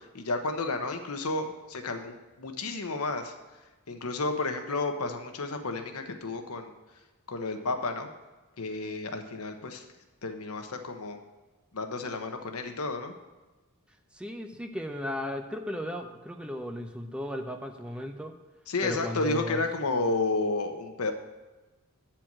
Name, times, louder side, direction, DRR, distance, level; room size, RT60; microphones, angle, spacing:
voice 1, 0.0-3.3 3.9-6.7 7.3-8.1 8.6-9.8 10.2-11.2 11.7-13.1 18.7-21.1, left 3 dB, 85° left, 6 dB, 1.0 m, -31 dB
voice 2, 14.1-18.3 18.8-19.6, equal, 5° right, 5 dB, 0.5 m, -35 dB
9.3 x 4.5 x 7.4 m, 1.2 s
head